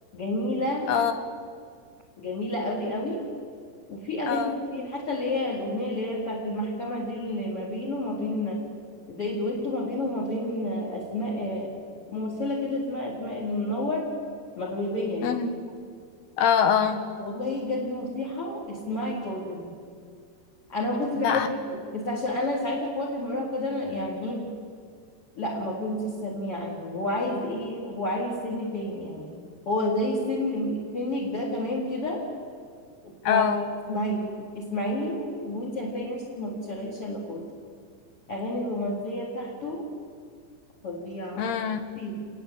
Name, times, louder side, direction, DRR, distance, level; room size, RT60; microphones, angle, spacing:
voice 1, 0.1-0.9 2.2-3.2 3.9-8.6 9.1-11.7 12.1-14.1 14.6-15.3 17.2-19.7 20.7-24.5 25.4-29.3 29.7-32.2 33.0-33.5 33.9-37.4 38.3-39.9 40.8-41.5 42.0-42.2, left 1 dB, 35° left, -1 dB, 4.7 m, -30 dB
voice 2, 0.9-1.2 4.3-4.6 15.2-15.6 16.4-17.0 21.2-21.5 33.3-33.6 41.4-41.8, left 7 dB, 85° left, 8 dB, 3.6 m, -24 dB
29.0 x 22.0 x 9.1 m, 2.1 s
omnidirectional pair, 4.5 m